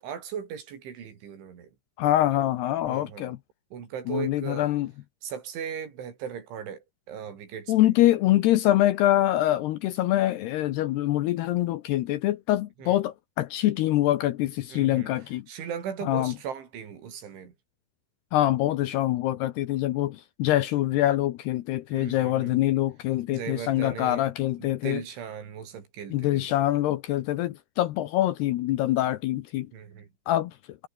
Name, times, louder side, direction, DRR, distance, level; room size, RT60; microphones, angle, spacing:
voice 1, 0.0-1.7 2.9-3.4 3.7-4.7 5.2-7.9 12.8-13.0 14.7-15.1 15.5-17.5 21.9-22.6 23.3-24.2 24.6-26.6 29.7-30.1, right 8 dB, 75° right, 6.3 m, -38 dB
voice 2, 2.0-3.4 4.1-4.9 7.7-15.5 16.0-16.3 18.3-25.0 26.1-29.7 30.3-30.9, left 14 dB, 75° left, 2.6 m, -25 dB
omnidirectional pair, 5.5 m